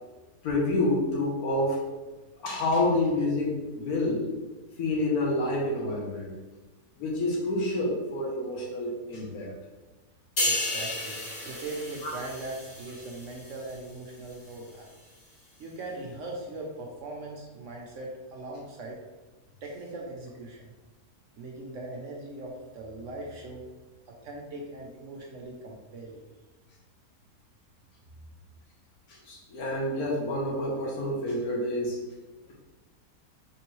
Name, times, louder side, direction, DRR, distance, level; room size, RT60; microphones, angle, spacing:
voice 1, 0.4-1.9 2.4-4.3 4.8-6.3 7.0-9.5 12.0-12.1 29.1-32.0, left 1 dB, 75° left, -2 dB, 1.4 m, -28 dB
sound 1, 10.4-13.9 14.3-14.5, left 1 dB, 45° left, 1.1 m, -33 dB
voice 2, 10.4-14.9 15.6-19.0 19.6-20.7 21.4-23.6 24.1-26.2, right 2 dB, 65° right, -1 dB, 0.9 m, -40 dB
4.5 x 3.1 x 3.0 m, 1.2 s
omnidirectional pair, 1.6 m